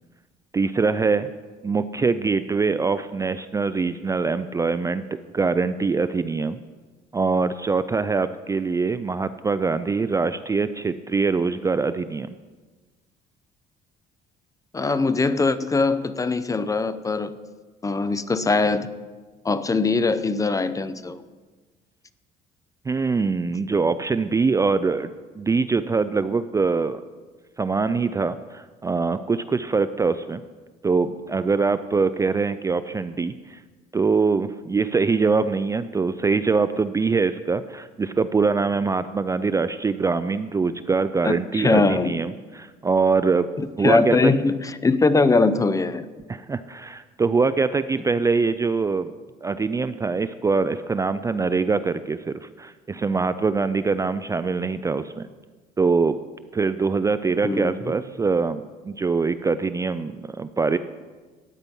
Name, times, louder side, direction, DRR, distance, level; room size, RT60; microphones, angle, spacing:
voice 1, 0.5-1.3 1.6-5.0 5.3-6.6 7.1-12.3 22.9-27.0 27.6-30.4 30.8-33.6 33.9-43.5 43.8-44.3 46.3-49.1 49.4-55.3 55.8-56.1 56.5-60.8, right 4 dB, 20° right, 12 dB, 0.4 m, -23 dB
voice 2, 14.7-17.3 17.8-18.9 19.4-21.2 41.2-42.1 43.6-46.0 57.4-57.9, left 3 dB, 20° left, 13 dB, 0.6 m, -21 dB
13.5 x 9.6 x 5.4 m, 1.3 s
cardioid pair, 110°, 17 cm